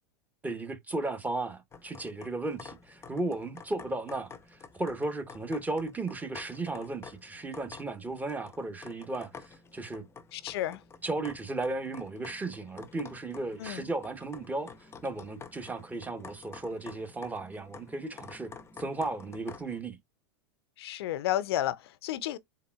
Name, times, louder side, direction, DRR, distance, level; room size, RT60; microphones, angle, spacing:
voice 1, 0.4-10.1 11.0-18.5 18.8-20.0, right 2 dB, 10° right, 0.9 m, -35 dB
sound 1, 1.7-19.8, left 5 dB, 20° left, 0.6 m, -50 dB
voice 2, 10.3-10.8 13.6-13.8 20.8-22.4, left 13 dB, 70° left, 0.4 m, -32 dB
4.0 x 3.9 x 2.3 m
hypercardioid pair, 105°, 13 cm